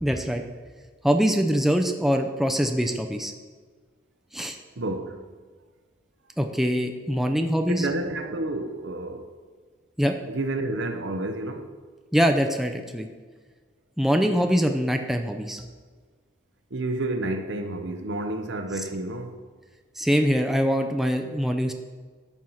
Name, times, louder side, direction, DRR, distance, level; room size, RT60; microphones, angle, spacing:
voice 1, 0.0-0.4 1.0-3.3 4.3-4.6 6.4-7.9 10.0-10.2 12.1-13.1 14.0-15.7 20.0-21.7, equal, ahead, 0.5 m, -23 dB
voice 2, 4.8-5.2 7.7-9.3 10.3-11.7 16.7-19.4, right 2 dB, 65° right, 0.8 m, -30 dB
12.5 x 4.6 x 5.6 m
head